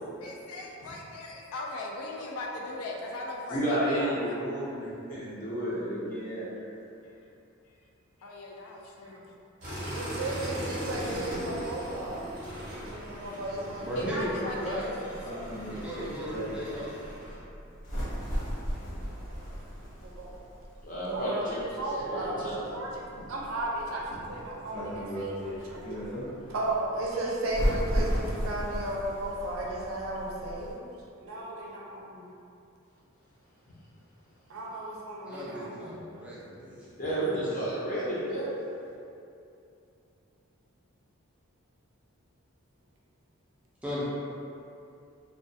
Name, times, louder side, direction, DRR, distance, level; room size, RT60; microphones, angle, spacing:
voice 1, 0.2-4.2 7.0-7.2 7.6-7.8 8.2-9.3 12.9-15.0, left 2 dB, 85° left, -1 dB, 0.4 m, -40 dB
voice 2, 3.5-6.5 20.8-22.7 37.0-38.5, right 1 dB, 40° left, -8 dB, 0.6 m, -31 dB
sound 1, 9.6-17.4, equal, 35° right, 0.7 m, -39 dB
voice 3, 9.9-12.4 12.8-14.9 19.3-19.5 20.0-20.4 20.9-26.1 26.5-30.8 31.2-32.3 34.5-36.0 36.7-36.8, right 1 dB, 75° right, -3 dB, 0.4 m, -35 dB
sound 2, 10.9-30.7, equal, 70° left, 0.9 m, -36 dB
voice 4, 13.8-14.8 15.7-17.1 35.2-36.9 43.8-44.0, equal, 5° right, -9 dB, 0.4 m, -36 dB
2.2 x 2.2 x 2.6 m, 2.6 s
head